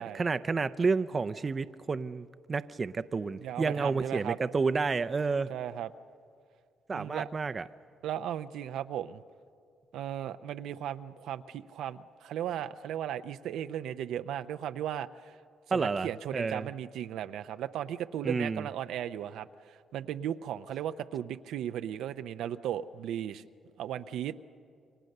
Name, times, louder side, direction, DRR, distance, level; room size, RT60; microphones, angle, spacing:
voice 1, 0.0-5.5 6.9-7.6 15.7-16.7 18.2-18.7, right 4 dB, 35° right, 12 dB, 0.5 m, -30 dB
voice 2, 3.4-4.4 5.5-5.9 6.9-7.3 8.0-9.2 9.9-15.4 15.7-23.4 23.8-24.3, right 10 dB, 80° right, 10 dB, 0.6 m, -36 dB
28.0 x 24.0 x 6.6 m, 2.3 s
cardioid pair, 90°, 0 cm